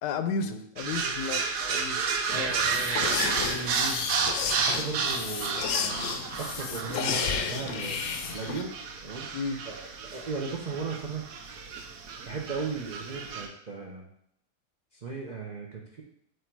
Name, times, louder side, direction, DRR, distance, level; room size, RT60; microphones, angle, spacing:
voice 1, 0.0-2.5 9.3-9.6, left 5 dB, 85° left, 9 dB, 1.2 m, -33 dB
sound 1, 0.8-13.5, right 5 dB, 80° right, 1.2 m, -32 dB
voice 2, 2.2-8.0 8.3-8.8 9.0-11.2 12.3-14.0 14.9-16.0, right 4 dB, 55° right, -2 dB, 0.4 m, -37 dB
sound 2, 2.3-8.6, left 6 dB, 65° left, 0.8 m, -32 dB
7.9 x 2.7 x 4.5 m, 0.72 s
omnidirectional pair, 1.7 m